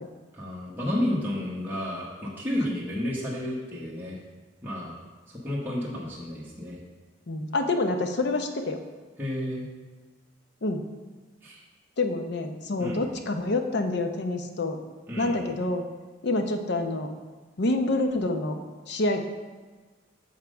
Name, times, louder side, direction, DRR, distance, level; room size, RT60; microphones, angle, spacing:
voice 1, 0.3-4.2 4.6-4.9 5.3-6.8 9.2-9.7 11.4-11.6 12.8-13.0 15.1-15.3, left 1 dB, 10° right, -7 dB, 1.1 m, -31 dB
voice 2, 7.3-8.8 10.6-10.8 12.0-14.8 15.2-15.8 16.2-17.1 17.6-18.6 18.9-19.2, left 2 dB, 60° left, 6 dB, 0.7 m, -27 dB
6.4 x 5.8 x 5.0 m, 1.3 s
head